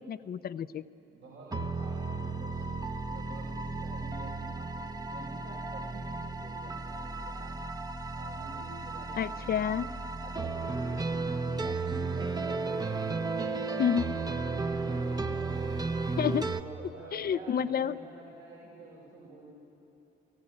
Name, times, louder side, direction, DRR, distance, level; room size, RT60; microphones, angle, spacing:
voice 1, 0.1-0.8 9.1-9.9 13.8-14.0 16.2-16.5 17.1-18.0, left 8 dB, 50° left, 14 dB, 0.7 m, -29 dB
voice 2, 1.1-7.6 8.1-9.9 10.2-16.1 16.5-19.5, right 3 dB, 75° right, -5 dB, 6.1 m, -49 dB
sound 1, 1.5-16.6, right 3 dB, 20° right, 1.0 m, -34 dB
30.0 x 15.5 x 9.9 m, 2.9 s
cardioid pair, 90°, 20 cm